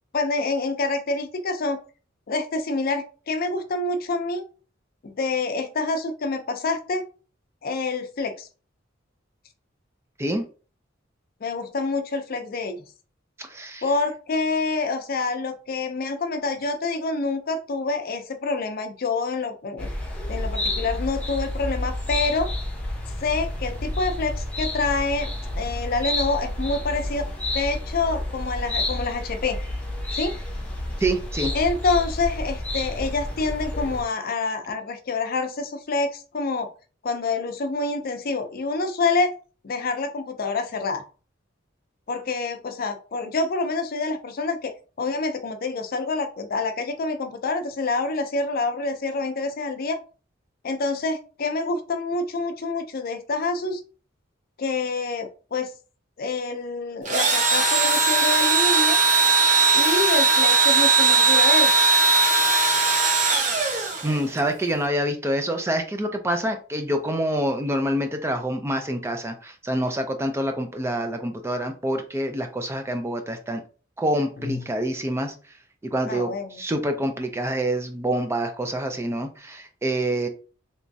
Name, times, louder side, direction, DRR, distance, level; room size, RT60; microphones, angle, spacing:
voice 1, 0.1-1.8 2.3-4.4 5.0-7.0 7.6-8.5 11.4-12.8 13.8-19.9 20.3-22.5 23.2-25.3 25.6-27.3 27.5-29.6 30.1-30.3 31.5-36.7 37.0-39.3 39.6-41.0 42.1-44.7 45.0-50.0 50.6-53.8 54.6-55.7 56.2-59.0 59.7-61.7 74.4-74.6 76.1-76.6, left 3 dB, 50° left, 7 dB, 0.5 m, -27 dB
voice 2, 13.4-13.8 31.0-31.5 64.0-73.6 74.0-75.3 75.8-80.3, right 1 dB, 15° right, 6 dB, 0.4 m, -26 dB
sound 1, 19.8-34.0, left 1 dB, 5° left, 0.8 m, -30 dB
Engine / Drill, 57.1-64.4, right 3 dB, 40° right, 0.8 m, -19 dB
3.3 x 3.0 x 2.7 m, 0.37 s
head